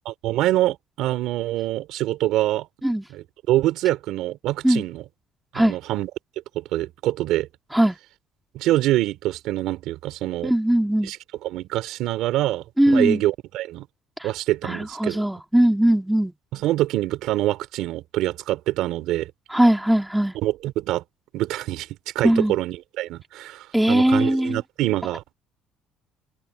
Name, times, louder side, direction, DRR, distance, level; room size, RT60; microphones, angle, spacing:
voice 1, 0.1-2.7 3.1-5.0 5.5-6.1 6.5-7.5 8.5-10.5 11.0-11.2 11.4-13.9 14.2-15.2 16.5-19.3 20.4-21.0 21.3-21.9 22.2-25.3, right 15 dB, 65° right, 3.7 m, -25 dB
voice 2, 10.4-11.1 12.8-13.2 14.2-14.3 14.6-16.3 19.5-20.3 22.2-22.6 23.7-24.6, right 1 dB, 5° right, 3.0 m, -20 dB
cardioid pair, 180°, 0 cm